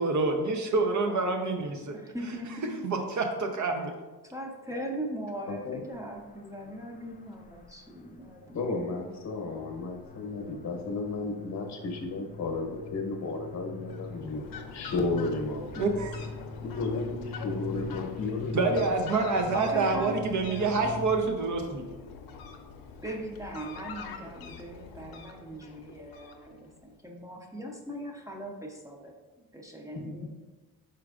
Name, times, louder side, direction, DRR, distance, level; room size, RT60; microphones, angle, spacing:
voice 1, 0.0-2.0 2.8-3.9 15.8-16.2 18.5-21.8, right 3 dB, 50° right, 4 dB, 0.6 m, -27 dB
voice 2, 1.1-2.9 4.2-8.6 19.5-20.8 23.0-30.3, right 1 dB, 10° right, 0 dB, 0.6 m, -40 dB
voice 3, 5.5-5.8 8.5-14.5 14.7-15.9 16.6-18.8 29.9-30.2, left 3 dB, 45° left, 2 dB, 0.9 m, -33 dB
sound 1, 5.8-21.2, left 4 dB, 25° left, 0.3 m, -43 dB
Fowl, 13.8-26.8, left 5 dB, 65° left, 0.7 m, -45 dB
4.9 x 4.5 x 2.4 m, 1.2 s
cardioid pair, 95°, 39 cm